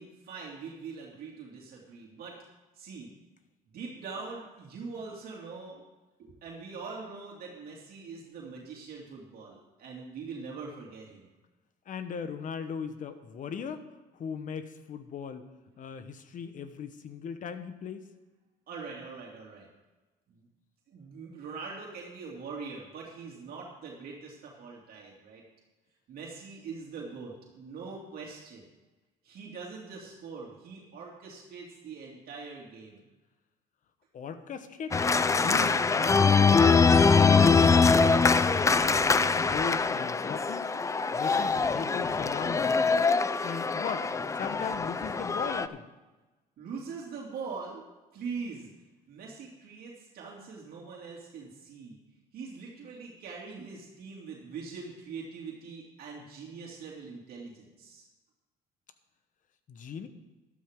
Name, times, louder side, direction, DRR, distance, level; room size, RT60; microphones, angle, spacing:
voice 1, 0.0-2.4 2.7-3.1 3.7-5.8 6.2-11.3 18.7-19.7 20.3-20.4 20.9-25.4 26.1-28.6 29.2-33.1 46.6-47.8 48.1-48.7 49.1-52.0 52.3-58.1, right 4 dB, 60° right, -2 dB, 2.6 m, -42 dB
voice 2, 11.8-13.9 14.1-18.1 34.1-38.5 39.4-40.7 41.1-42.8 43.4-44.1 44.3-45.8 59.7-60.1, left 6 dB, 50° left, 10 dB, 1.1 m, -38 dB
Organ, 34.9-45.7, left 4 dB, 20° left, 0.5 m, -23 dB
13.0 x 12.5 x 3.7 m, 1.2 s
cardioid pair, 110°, 17 cm